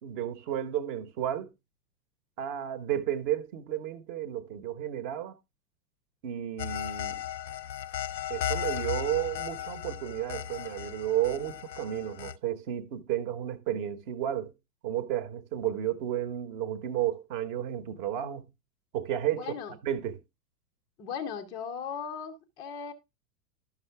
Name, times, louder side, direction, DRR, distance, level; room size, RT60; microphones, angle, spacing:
voice 1, 0.0-1.5 2.4-5.3 6.2-7.2 8.3-14.5 14.8-18.4 18.9-19.5 19.8-20.2, right 11 dB, 35° right, 1.1 m, -32 dB
sound 1, 6.6-12.4, left 10 dB, 80° left, 0.6 m, -36 dB
voice 2, 19.4-19.8 21.0-22.9, left 7 dB, 10° left, 0.5 m, -37 dB
11.5 x 5.9 x 3.4 m
figure-of-eight pair, 105°, 50 cm